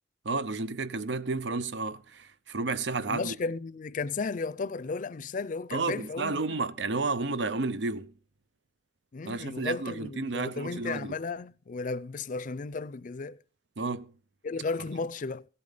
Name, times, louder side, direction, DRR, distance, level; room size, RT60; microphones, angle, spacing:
voice 1, 0.2-3.4 5.7-8.1 9.2-11.1 13.8-14.1, right 3 dB, 90° right, 0.7 m, -31 dB
voice 2, 3.1-6.4 9.1-13.4 14.4-15.5, left 4 dB, 50° left, 0.5 m, -34 dB
16.5 x 8.4 x 4.0 m
head